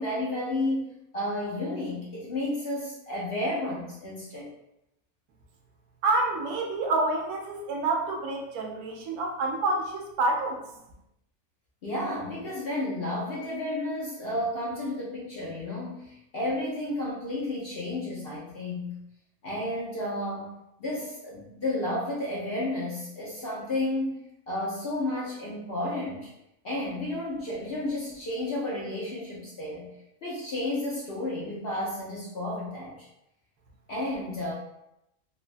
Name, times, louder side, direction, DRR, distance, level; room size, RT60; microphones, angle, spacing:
voice 1, 0.0-4.5 11.8-19.0 19.4-20.5 20.8-26.3 26.6-29.9 30.2-33.1 33.9-34.5, left 1 dB, 60° left, -5 dB, 0.7 m, -32 dB
voice 2, 6.0-10.6, right 2 dB, 80° right, 2 dB, 1.0 m, -28 dB
3.3 x 2.1 x 2.5 m, 0.86 s
omnidirectional pair, 1.5 m